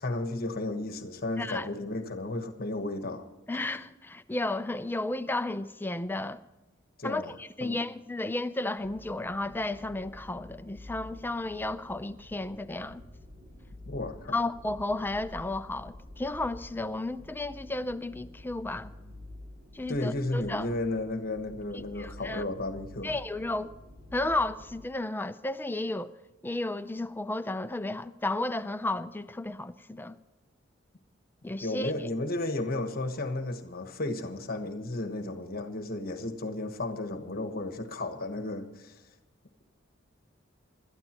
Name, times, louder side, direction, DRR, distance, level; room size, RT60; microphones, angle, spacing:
voice 1, 0.0-3.3 7.0-7.3 7.6-7.8 13.9-14.4 19.9-23.2 31.6-39.0, left 2 dB, 50° left, 1.2 m, -33 dB
voice 2, 1.4-1.7 3.5-6.4 7.0-13.0 14.3-18.9 19.7-20.7 22.0-22.4 23.0-23.7 24.1-26.1 26.4-30.2 31.4-31.9, left 2 dB, 10° left, 0.5 m, -33 dB
sound 1, 8.8-24.9, left 1 dB, 30° right, 2.3 m, -49 dB
27.0 x 12.5 x 3.0 m
head